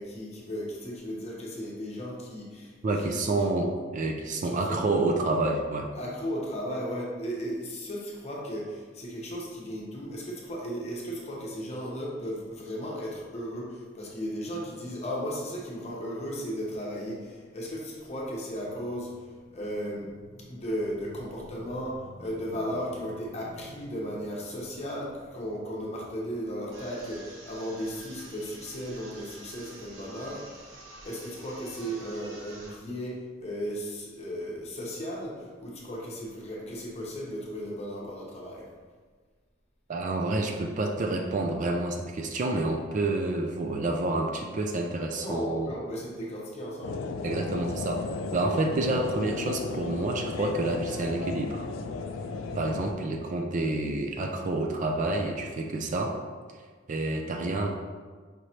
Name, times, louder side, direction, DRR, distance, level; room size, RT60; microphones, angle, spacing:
voice 1, 0.0-2.8 3.0-3.6 4.4-4.8 6.0-30.7 31.0-38.7 45.2-47.0, equal, 35° left, -3 dB, 0.9 m, -35 dB
voice 2, 2.8-5.9 39.9-45.7 47.2-48.0 48.3-51.7 52.5-56.2 56.9-57.7, right 2 dB, 40° right, 3 dB, 0.3 m, -28 dB
sound 1, 26.7-32.7, right 2 dB, 70° right, 1.0 m, -48 dB
sound 2, 46.8-52.9, left 4 dB, 85° left, 0.3 m, -35 dB
5.2 x 3.1 x 2.8 m, 1.5 s
head